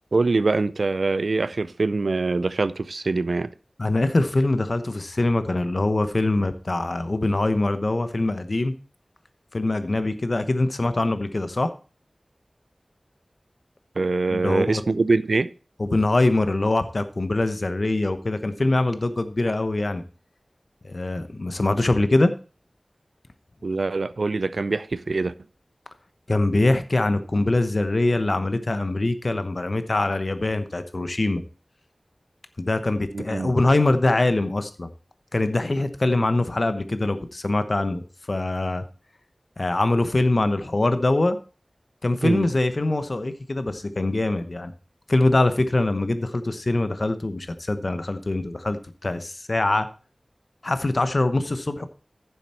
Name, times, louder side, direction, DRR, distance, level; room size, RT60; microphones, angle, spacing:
voice 1, 0.1-3.5 14.0-15.5 23.6-25.3 33.1-33.5 42.2-42.5, right 3 dB, 85° right, 0.4 m, -23 dB
voice 2, 3.8-8.7 9.5-11.7 14.3-14.8 15.8-20.0 20.8-22.3 26.3-31.4 32.6-34.9 35.3-38.8 39.6-41.4 42.0-44.7 45.1-49.9 50.6-51.9, left 2 dB, 60° left, 1.0 m, -23 dB
10.5 x 7.1 x 4.3 m
wide cardioid pair, 50°, 0 cm